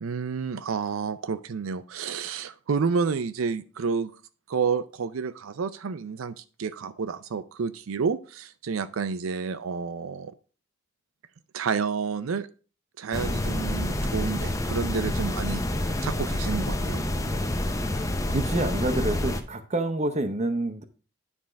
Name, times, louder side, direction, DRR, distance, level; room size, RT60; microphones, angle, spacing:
voice 1, 0.0-4.2 4.5-10.3 11.5-12.5 13.0-17.0, right 5 dB, 90° right, 12 dB, 0.5 m, -30 dB
sound 1, 13.1-19.4, left 1 dB, 15° left, 0.6 m, -28 dB
voice 2, 18.3-20.8, right 2 dB, 35° right, 9 dB, 0.8 m, -28 dB
9.8 x 3.5 x 5.1 m, 0.36 s
head